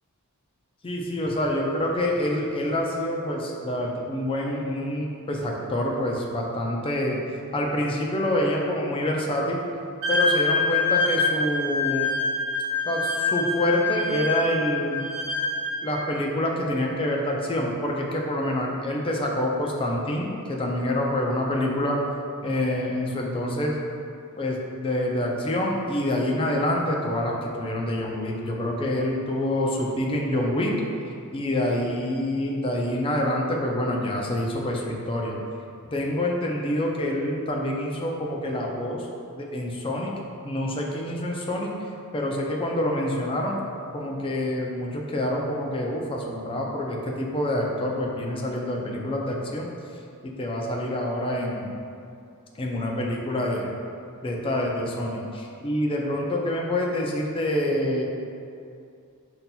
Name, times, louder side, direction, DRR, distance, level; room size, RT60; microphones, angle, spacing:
voice 1, 0.8-7.2 7.5-9.6 10.1-12.1 12.9-15.0 15.8-22.0 22.4-23.8 24.4-30.8 31.1-35.4 35.9-39.1 39.3-40.1 40.4-41.7 42.1-43.6 43.9-49.7 50.2-51.7 52.5-53.7 54.2-58.0, left 1 dB, 25° left, -1 dB, 0.4 m, -26 dB
Wind instrument woodwind instrument, 10.0-16.0, left 3 dB, 70° right, 0.6 m, -26 dB
5.6 x 2.7 x 2.2 m, 2.5 s
head